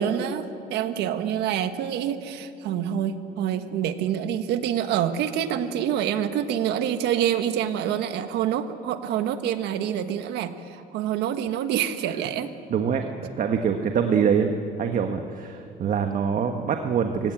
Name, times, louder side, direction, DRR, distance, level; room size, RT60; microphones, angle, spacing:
voice 1, 0.0-12.5, right 9 dB, 85° right, 9 dB, 1.4 m, -26 dB
voice 2, 12.7-14.5 14.8-17.3, right 7 dB, 50° right, 5 dB, 1.4 m, -24 dB
24.5 x 17.0 x 8.9 m, 2.6 s
cardioid pair, 110°, 17 cm